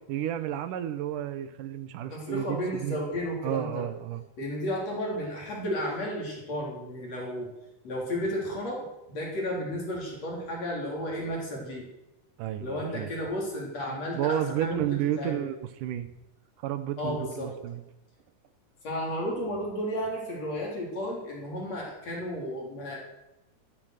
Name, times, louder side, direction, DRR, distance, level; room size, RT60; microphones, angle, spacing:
voice 1, 0.1-3.0 3.4-4.2 12.4-13.1 13.9-16.1 16.6-17.8, right 11 dB, 75° right, 11 dB, 2.4 m, -32 dB
voice 2, 2.1-3.8 4.4-7.5 7.8-11.9 12.6-14.8 15.2-15.5 17.0-17.5 18.8-23.0, equal, 50° left, -2 dB, 4.9 m, -33 dB
14.5 x 12.5 x 6.6 m, 0.91 s
omnidirectional pair, 3.9 m